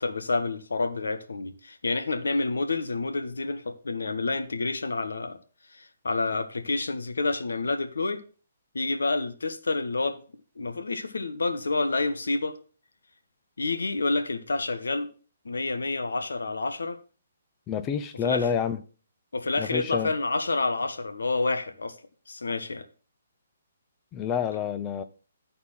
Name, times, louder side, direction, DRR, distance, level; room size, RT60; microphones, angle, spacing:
voice 1, 0.0-5.4 5.7-8.2 8.7-10.2 10.6-12.6 13.6-15.1 15.4-17.0 18.2-18.5 19.3-22.0 22.3-22.8, left 3 dB, 85° left, 1.2 m, -28 dB
voice 2, 17.7-18.8 19.6-20.1 24.1-25.0, left 7 dB, 20° left, 0.7 m, -28 dB
11.5 x 4.3 x 5.7 m
hypercardioid pair, 145°, 0 cm